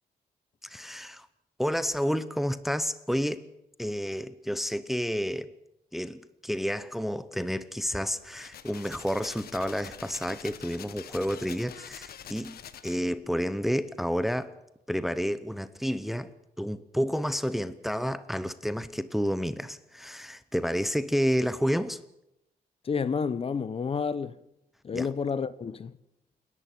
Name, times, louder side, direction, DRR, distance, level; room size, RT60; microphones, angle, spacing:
voice 1, 0.6-1.3 1.6-3.5 3.8-5.5 5.9-14.6 14.9-16.3 16.6-22.0 24.9-25.1, equal, ahead, 0.8 m, -30 dB
sound 1, 8.2-13.2, left 9 dB, 75° left, 1.3 m, -46 dB
voice 2, 22.8-24.4 24.8-25.9, left 5 dB, 35° left, 0.9 m, -30 dB
28.5 x 11.0 x 9.2 m
wide cardioid pair, 155°, 16 cm